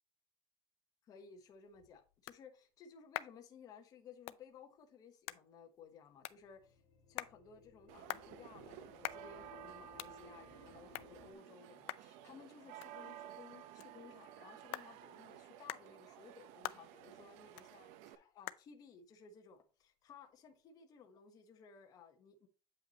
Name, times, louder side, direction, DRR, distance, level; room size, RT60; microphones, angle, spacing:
voice 1, 1.0-6.8 7.1-22.5, left 6 dB, 35° left, 1.1 m, -58 dB
sound 1, 1.4-20.7, left 18 dB, 70° left, 0.5 m, -51 dB
sound 2, 6.3-11.3, left 7 dB, 50° left, 1.7 m, -62 dB
sound 3, 7.9-18.2, right 11 dB, 75° right, 0.9 m, -54 dB
8.5 x 5.6 x 3.0 m
cardioid pair, 170°, 11 cm